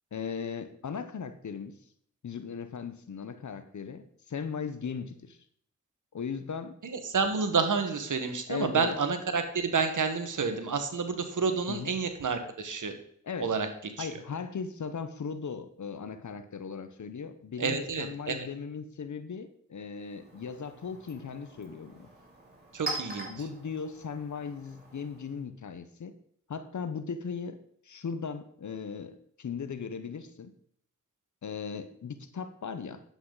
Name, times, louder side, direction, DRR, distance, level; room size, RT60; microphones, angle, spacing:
voice 1, 0.1-1.8 2.2-5.4 6.1-6.8 8.5-9.0 11.7-11.9 13.2-13.5 14.0-22.1 23.3-26.1 26.5-27.6 27.8-30.5 31.4-33.0, left 6 dB, 70° left, 11 dB, 0.9 m, -38 dB
voice 2, 6.8-12.9 13.4-13.7 14.0-14.1 17.6-18.4 22.7-23.3, right 5 dB, 75° right, 7 dB, 1.5 m, -29 dB
Chink clink, 19.9-25.4, right 3 dB, 30° right, 4.8 m, -43 dB
10.0 x 8.3 x 4.0 m, 0.65 s
cardioid pair, 40°, 31 cm